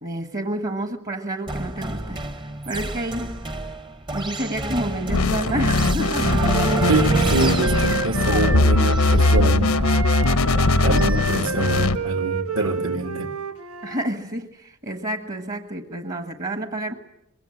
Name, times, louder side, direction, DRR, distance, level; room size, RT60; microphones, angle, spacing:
voice 1, 0.0-3.3 4.1-6.4 13.8-16.9, right 1 dB, 40° right, 1.4 m, -29 dB
sound 1, 1.5-11.2, right 1 dB, 20° right, 0.9 m, -29 dB
sound 2, 5.1-12.0, left 2 dB, 85° left, 1.0 m, -20 dB
Wind instrument woodwind instrument, 5.4-9.5 9.8-14.1, right 4 dB, 90° right, 1.9 m, -29 dB
voice 2, 6.9-10.0 10.8-13.3, right 2 dB, 65° right, 2.3 m, -25 dB
24.0 x 21.5 x 8.9 m
head